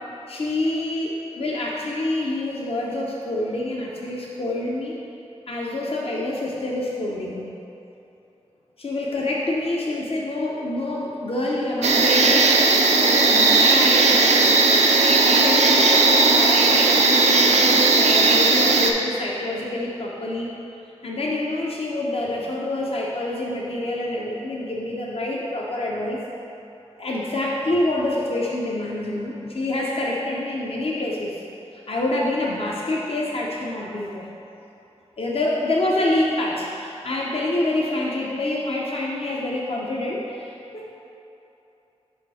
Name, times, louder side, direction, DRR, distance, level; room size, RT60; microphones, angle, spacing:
voice 1, 0.3-5.0 5.5-7.5 8.8-12.6 13.0-14.5 15.3-20.5 21.0-26.2 27.0-31.3 31.9-34.3 35.2-40.5 40.7-40.9, left 1 dB, 55° left, -3 dB, 0.7 m, -26 dB
sound 1, 11.8-18.9, right 3 dB, 75° right, 0.5 m, -17 dB
5.6 x 4.4 x 4.9 m, 2.9 s
wide cardioid pair, 85°, 11 cm